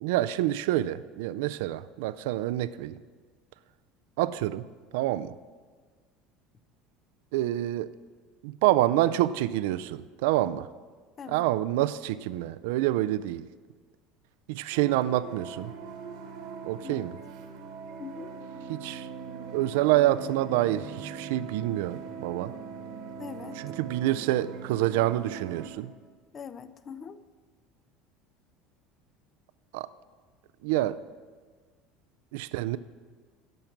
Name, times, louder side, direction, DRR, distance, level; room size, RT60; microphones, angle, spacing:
voice 1, 0.0-3.0 4.2-4.7 4.9-5.4 7.3-7.9 8.4-10.7 11.3-13.5 14.5-15.7 16.6-17.2 18.7-19.1 19.5-22.5 23.6-25.9 29.7-29.9 30.6-31.0 32.3-32.8, right 14 dB, 85° right, 16 dB, 0.3 m, -27 dB
sound 1, 14.7-25.7, right 6 dB, 65° right, 1.2 m, -41 dB
voice 2, 18.0-18.3 23.2-23.6 26.3-27.2, left 6 dB, 25° left, 13 dB, 0.4 m, -42 dB
10.5 x 5.9 x 7.2 m, 1.5 s
cardioid pair, 155°, 0 cm